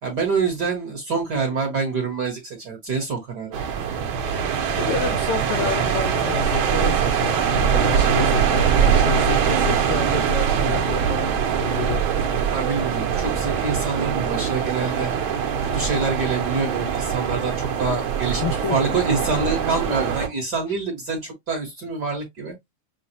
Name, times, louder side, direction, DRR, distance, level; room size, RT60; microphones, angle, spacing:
voice 1, 0.0-3.6 12.5-15.1 15.6-18.4 18.7-22.5, right 4 dB, 50° right, 1.3 m, -26 dB
sound 1, 3.5-20.3, right 7 dB, 70° right, 1.2 m, -22 dB
voice 2, 4.8-12.0 18.2-19.0, left 6 dB, 75° left, 1.3 m, -29 dB
6.7 x 2.3 x 2.8 m
omnidirectional pair, 3.4 m